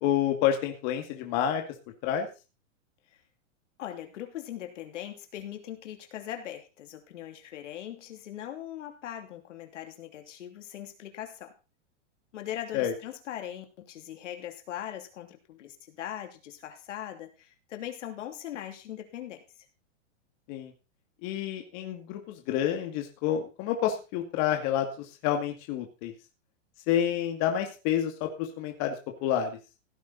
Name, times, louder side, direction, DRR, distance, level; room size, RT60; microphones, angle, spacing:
voice 1, 0.0-1.6 2.0-2.3 12.7-12.9 20.5-20.7 21.2-26.1 26.9-28.9 29.2-29.6, left 10 dB, 35° left, 3 dB, 2.3 m, -28 dB
voice 2, 3.8-11.5 12.3-19.6, left 11 dB, 70° left, 5 dB, 3.0 m, -40 dB
16.5 x 9.4 x 4.1 m, 0.31 s
supercardioid pair, 160°, 38 cm